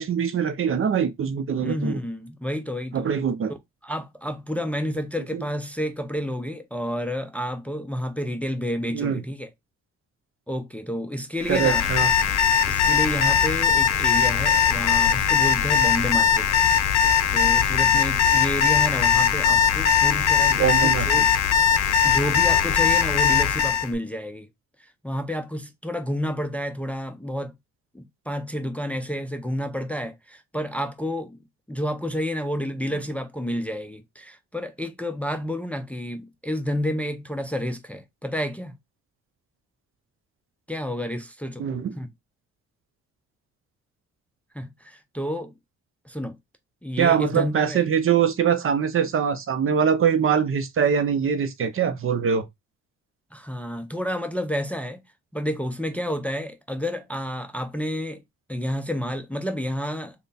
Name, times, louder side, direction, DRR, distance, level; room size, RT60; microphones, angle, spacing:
voice 1, 0.0-2.0 2.9-3.5 5.3-5.4 8.9-9.2 11.5-12.1 20.6-21.1 41.6-42.0 47.0-52.4, right 7 dB, 45° right, 0.6 m, -23 dB
voice 2, 1.6-3.1 3.5-3.6 3.8-9.5 10.5-11.9 12.6-16.5 17.3-21.3 21.7-24.5 24.8-27.5 27.9-31.4 31.7-38.7 40.7-41.7 42.0-42.1 44.5-45.5 46.1-46.4 46.8-47.8 53.3-55.0 55.3-58.2 58.5-60.1, equal, 5° left, 0.5 m, -30 dB
Alarm, 11.4-23.9, left 8 dB, 60° left, 0.6 m, -20 dB
3.2 x 2.1 x 4.0 m
cardioid pair, 90°, 30 cm